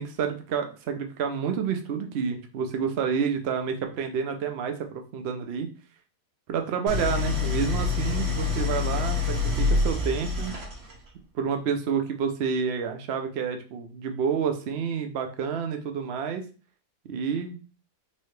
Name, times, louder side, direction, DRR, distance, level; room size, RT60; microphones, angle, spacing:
voice 1, 0.0-5.7 6.5-10.6 11.3-16.5 17.0-17.6, right 6 dB, 65° right, 5 dB, 0.6 m, -29 dB
Idling, 6.9-11.1, left 4 dB, 50° right, 1.1 m, -26 dB
4.2 x 2.8 x 3.2 m, 0.35 s
omnidirectional pair, 1.6 m